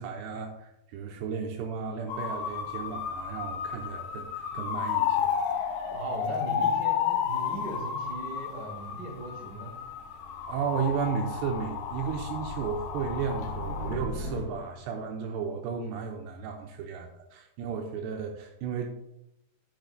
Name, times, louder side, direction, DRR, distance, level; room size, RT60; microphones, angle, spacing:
voice 1, 0.0-5.9 10.5-19.0, right 6 dB, 85° right, 2 dB, 2.7 m, -34 dB
sound 1, 2.1-14.0, left 8 dB, 80° left, 3.1 m, -32 dB
voice 2, 5.9-9.8, right 1 dB, 30° right, -3 dB, 3.0 m, -38 dB
sound 2, 9.8-15.0, left 1 dB, 35° left, 3.0 m, -40 dB
10.0 x 9.3 x 2.2 m, 0.84 s
omnidirectional pair, 5.0 m